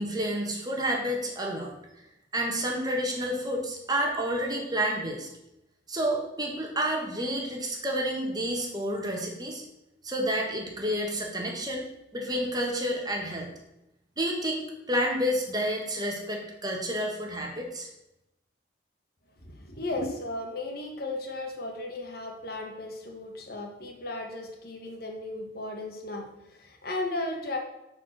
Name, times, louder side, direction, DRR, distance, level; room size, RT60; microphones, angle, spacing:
voice 1, 0.0-1.7 2.3-5.3 5.9-9.6 10.0-11.8 12.1-13.5 14.2-17.9, equal, 20° right, 0 dB, 1.4 m, -30 dB
voice 2, 19.4-27.6, left 2 dB, 55° left, 2 dB, 1.5 m, -35 dB
8.4 x 4.6 x 6.7 m, 0.89 s
head